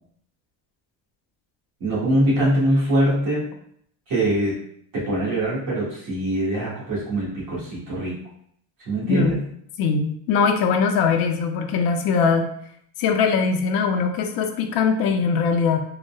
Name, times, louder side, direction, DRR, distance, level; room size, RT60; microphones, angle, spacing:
voice 1, 1.8-3.5 4.1-4.6 4.9-8.2 8.8-9.4, right 1 dB, 55° right, -6 dB, 1.4 m, -23 dB
voice 2, 9.1-9.4 9.8-12.5 13.0-15.8, left 5 dB, 65° left, 5 dB, 0.5 m, -21 dB
3.8 x 2.0 x 2.3 m, 0.68 s
cardioid pair, 160°, 39 cm